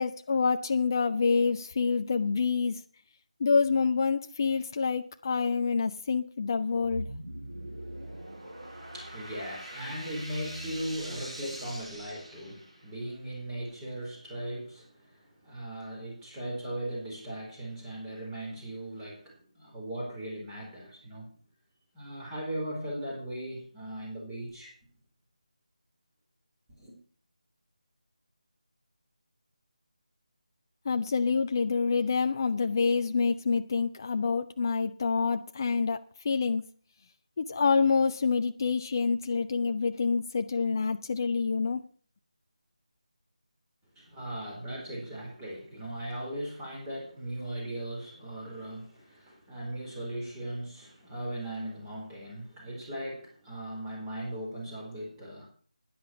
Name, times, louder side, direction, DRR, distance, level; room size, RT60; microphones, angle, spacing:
voice 1, 0.0-2.8 3.4-7.1 30.9-36.6 37.4-41.8, left 5 dB, 30° left, 0.5 m, -27 dB
sound 1, 6.7-13.0, right 1 dB, 55° right, 7.8 m, -42 dB
voice 2, 8.6-21.3 21.9-24.7 26.8-27.0 43.9-55.5, right 1 dB, 10° right, 4.5 m, -38 dB
11.0 x 10.5 x 6.1 m
figure-of-eight pair, 160°, 4 cm